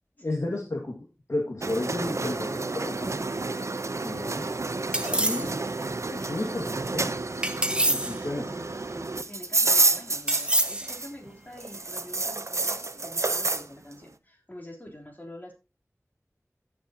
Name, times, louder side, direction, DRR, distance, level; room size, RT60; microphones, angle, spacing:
voice 1, 0.2-3.1 4.0-4.4 5.0-5.6 5.9-7.1 7.9-8.8, left 2 dB, 65° left, 0 dB, 1.9 m, -33 dB
sound 1, 1.6-11.3 11.6-13.7, right 3 dB, 60° right, 0.7 m, -29 dB
voice 2, 4.3-4.6 8.5-15.5, left 1 dB, 30° left, 0 dB, 3.4 m, -46 dB
sound 2, 4.9-5.5 7.4-8.2 10.3-10.9, right 1 dB, 20° right, 1.0 m, -26 dB
15.5 x 6.6 x 2.8 m, 0.27 s
wide cardioid pair, 55°, 6 cm